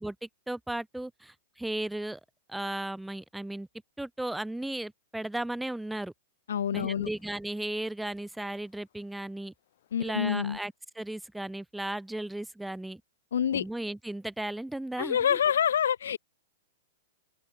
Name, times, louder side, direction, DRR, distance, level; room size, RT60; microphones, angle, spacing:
voice 1, 0.0-2.2 2.5-3.7 4.0-6.1 6.7-9.5 10.0-13.0 13.5-15.4, right 1 dB, 5° right, 0.9 m, -35 dB
voice 2, 6.5-7.1 9.9-10.6 13.3-13.7 15.0-16.2, left 8 dB, 90° left, 0.4 m, -27 dB
sound 1, 6.7-10.2 10.4-11.3 12.1-12.2, left 13 dB, 65° left, 7.7 m, -68 dB
open air
hypercardioid pair, 145°, 0 cm